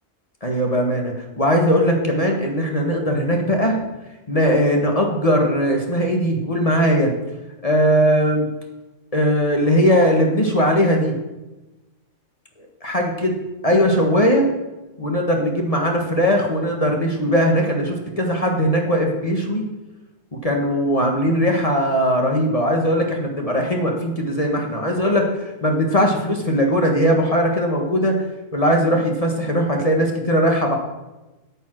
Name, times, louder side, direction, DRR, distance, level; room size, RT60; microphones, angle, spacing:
voice 1, 0.4-3.8 4.3-7.1 7.6-8.5 9.1-11.1 12.8-13.3 13.6-14.5 15.0-19.6 20.4-28.2 28.5-30.7, equal, 30° left, 1 dB, 1.5 m, -19 dB
9.0 x 8.7 x 6.2 m, 1.1 s
omnidirectional pair, 1.3 m